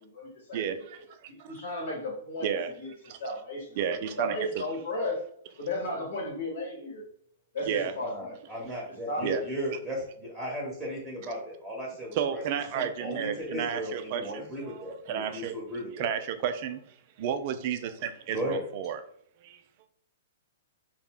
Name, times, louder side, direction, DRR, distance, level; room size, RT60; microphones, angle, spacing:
voice 1, 0.0-0.6 1.3-2.5 2.8-2.9 3.2-3.6 4.2-5.2 5.6-7.0 7.5-8.6 9.1-9.4, left 1 dB, 60° left, 0 dB, 1.1 m, -34 dB
voice 2, 0.5-1.5 2.4-2.7 3.8-4.6 7.7-7.9 9.2-9.4 12.1-15.5 16.0-16.8 17.2-19.0 19.4-19.6, right 8 dB, 45° right, 9 dB, 0.3 m, -32 dB
voice 3, 8.0-12.4 12.7-16.1 18.3-18.6, equal, 5° right, -2 dB, 0.9 m, -36 dB
2.4 x 2.1 x 3.5 m, 0.63 s
figure-of-eight pair, 110°, 0 cm